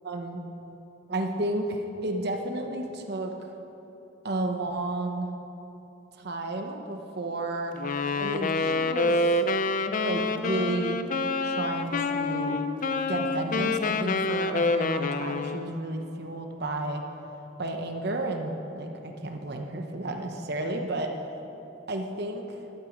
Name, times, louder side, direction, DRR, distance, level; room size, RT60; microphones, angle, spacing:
voice 1, 0.0-0.5 1.1-3.5 4.2-5.3 6.1-7.8 8.2-9.4 10.0-11.0 11.4-12.6 13.1-17.0 17.6-21.1 21.9-22.6, right 2 dB, 55° right, 4 dB, 0.9 m, -32 dB
Wind instrument woodwind instrument, 7.8-15.8, left 3 dB, 40° left, 0.5 m, -27 dB
13.0 x 11.5 x 5.2 m, 3.0 s
head